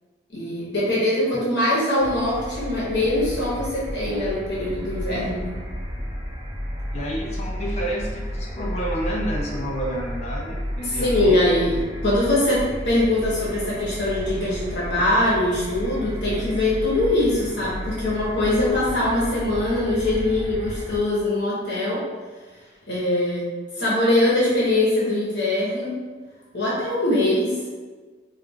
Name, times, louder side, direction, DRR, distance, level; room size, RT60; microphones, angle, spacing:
voice 1, 0.3-5.5 10.8-11.8 12.0-22.0 22.9-23.5 23.8-26.0 26.5-27.8, left 1 dB, 70° left, -7 dB, 1.1 m, -22 dB
sound 1, 2.0-21.0, equal, 20° right, 0.5 m, -32 dB
voice 2, 6.9-11.4, right 1 dB, 35° left, -2 dB, 0.5 m, -30 dB
4.5 x 2.4 x 2.3 m, 1.4 s
head